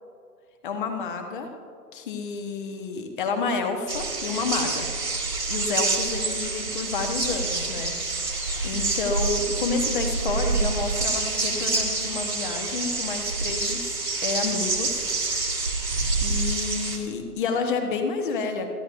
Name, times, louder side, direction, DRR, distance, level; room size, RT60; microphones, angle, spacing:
voice 1, 0.6-1.5 1.9-5.2 5.5-7.9 8.6-15.1 15.4-15.7 16.2-18.7, left 4 dB, 30° left, 6 dB, 1.3 m, -30 dB
sound 1, 3.9-17.0, right 3 dB, 85° right, 2.9 m, -27 dB
27.5 x 11.5 x 2.6 m, 2.3 s
figure-of-eight pair, 125°, 48 cm